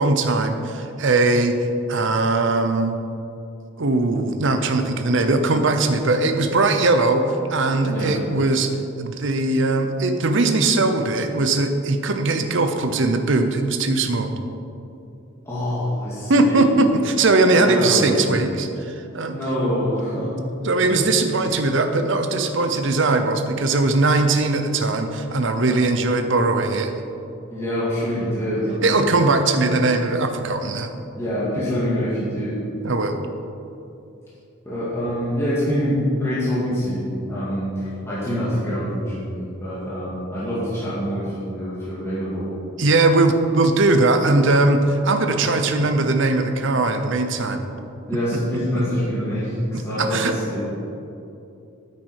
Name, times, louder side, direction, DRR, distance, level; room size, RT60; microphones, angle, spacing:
voice 1, 0.0-2.9 3.8-8.7 9.0-14.3 16.3-19.4 20.6-26.9 28.8-30.9 32.8-33.2 42.8-47.6 48.3-48.8 49.7-50.3, right 2 dB, 60° right, 7 dB, 0.8 m, -20 dB
voice 2, 15.5-16.7 17.5-18.3 19.3-20.3 20.8-21.0 21.5-21.6 27.5-29.1 31.2-32.6 34.7-42.5 45.4-45.7 48.1-50.7, equal, 10° left, -10 dB, 2.1 m, -25 dB
9.7 x 8.7 x 4.8 m, 2.8 s
head